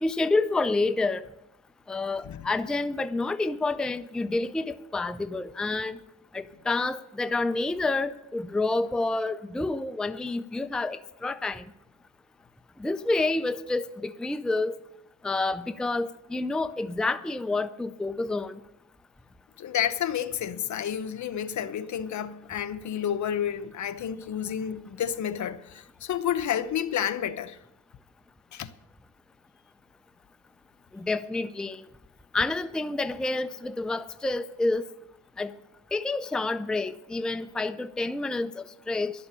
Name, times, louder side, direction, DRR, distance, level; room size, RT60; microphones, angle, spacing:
voice 1, 0.0-1.2 1.9-6.0 6.3-11.6 12.8-14.7 15.2-18.5 30.9-31.8 32.3-34.9 35.4-35.5 35.9-39.1, left 2 dB, ahead, 0.4 m, -28 dB
voice 2, 19.6-27.6 28.5-28.7, left 9 dB, 60° left, 0.8 m, -30 dB
12.0 x 7.0 x 9.8 m
cardioid pair, 110°, 32 cm